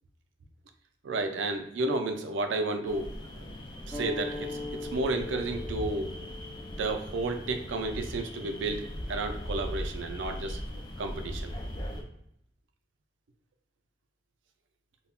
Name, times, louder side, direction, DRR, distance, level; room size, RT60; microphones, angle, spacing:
voice 1, 1.0-3.1 3.9-4.6 4.9-6.1 6.8-10.6 11.0-11.5, right 2 dB, 85° right, 6 dB, 0.4 m, -32 dB
sound 1, 2.8-12.0, equal, 25° left, 0.3 m, -39 dB
sound 2, 3.9-9.0, left 2 dB, 5° left, 0.8 m, -42 dB
2.2 x 2.1 x 3.6 m, 0.76 s
head